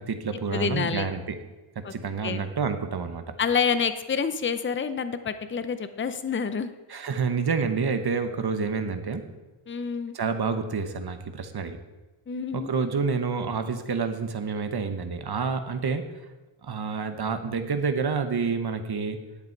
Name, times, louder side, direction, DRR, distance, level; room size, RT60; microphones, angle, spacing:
voice 1, 0.0-1.4 1.8-3.2 6.9-9.2 10.1-11.8 12.5-16.1 16.6-19.2, right 5 dB, 50° right, 9 dB, 1.0 m, -28 dB
voice 2, 0.5-1.1 1.8-1.9 2.2-2.4 3.4-6.7 9.7-10.2 12.3-12.7, left 6 dB, 25° left, 11 dB, 0.5 m, -28 dB
11.0 x 8.3 x 4.6 m, 1.2 s
wide cardioid pair, 120°, 50 cm